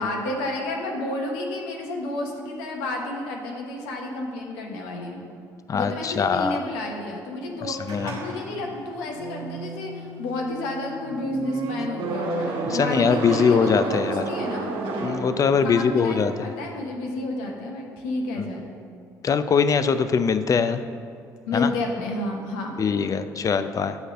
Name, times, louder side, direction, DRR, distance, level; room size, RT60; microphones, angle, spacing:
voice 1, 0.0-5.2 5.7-14.8 15.6-18.7 21.5-22.7, left 2 dB, 90° left, 1 dB, 1.0 m, -31 dB
voice 2, 5.7-6.6 7.6-8.2 12.6-14.2 15.0-16.5 19.2-20.8 21.5-21.7 22.8-24.0, left 6 dB, 40° left, 11 dB, 0.4 m, -22 dB
sound 1, 7.9-15.9, right 3 dB, 75° right, 1.0 m, -31 dB
8.0 x 3.3 x 6.4 m, 2.4 s
supercardioid pair, 70°, 9 cm